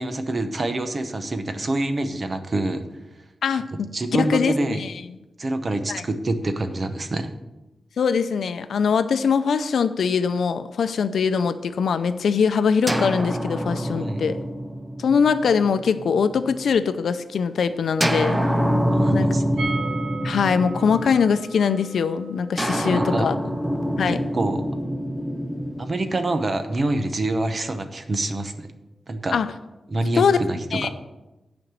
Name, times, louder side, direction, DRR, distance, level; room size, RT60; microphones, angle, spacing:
voice 1, 0.0-2.9 3.9-4.8 5.4-7.3 14.0-14.2 18.9-19.7 22.8-23.3 24.1-24.6 25.8-28.7 29.1-29.4 29.9-30.9, right 2 dB, 35° right, 8 dB, 0.8 m, -26 dB
voice 2, 4.1-4.9 5.9-6.0 8.0-14.4 15.0-18.4 19.1-19.3 20.2-23.3 24.0-24.2 29.3-29.5 30.2-30.4 30.7-30.9, left 6 dB, 80° left, 11 dB, 0.6 m, -22 dB
sound 1, 12.9-16.7 18.0-21.6 22.6-26.7, equal, 5° right, 0.5 m, -26 dB
sound 2, 19.6-25.3 25.6-25.7 26.0-26.1, right 3 dB, 70° right, 1.5 m, -38 dB
9.7 x 5.2 x 7.4 m, 1.0 s
wide cardioid pair, 170°, 0 cm